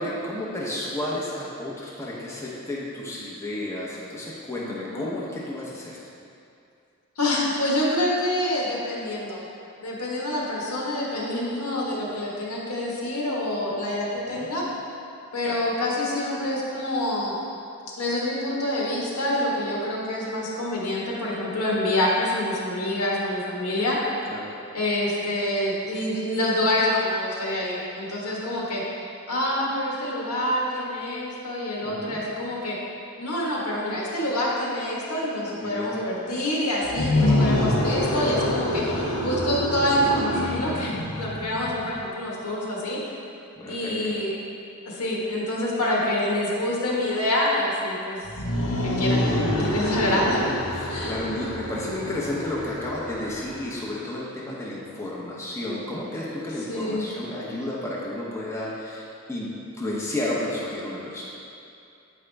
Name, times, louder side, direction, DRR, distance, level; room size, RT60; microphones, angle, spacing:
voice 1, 0.0-6.0 14.3-14.5 15.4-15.6 24.3-24.5 31.8-32.2 35.6-36.0 38.6-38.9 43.6-44.1 50.7-61.3, left 1 dB, 10° left, -6 dB, 0.8 m, -32 dB
voice 2, 4.6-5.1 7.2-9.4 9.8-14.6 15.3-17.3 18.0-24.0 24.7-28.8 29.3-32.8 33.2-38.8 39.2-43.0 43.7-44.3 44.8-48.2 48.8-50.4 50.9-51.2 56.7-57.1, left 1 dB, 85° left, -5 dB, 1.4 m, -26 dB
sound 1, 36.8-42.0 48.2-53.9, left 1 dB, 65° left, 0.9 m, -26 dB
8.3 x 5.0 x 3.3 m, 2.6 s
head